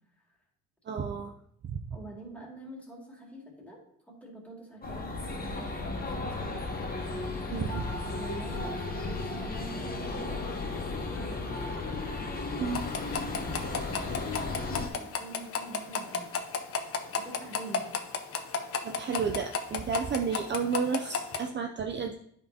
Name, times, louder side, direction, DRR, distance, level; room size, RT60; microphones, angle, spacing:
voice 1, 0.9-1.3 1.6-2.0 7.5-7.8 12.6-12.9 18.8-22.2, right 6 dB, 35° right, 3 dB, 0.5 m, -32 dB
voice 2, 1.9-3.8 4.1-6.7 8.0-10.5 11.1-11.7 12.9-16.3 16.7-17.9, right 2 dB, 5° left, -2 dB, 2.2 m, -46 dB
sound 1, 4.8-14.9, left 3 dB, 30° left, 1.3 m, -34 dB
sound 2, 12.7-21.5, left 5 dB, 50° left, 0.7 m, -34 dB
8.9 x 5.3 x 2.8 m, 0.70 s
cardioid pair, 90°, 30 cm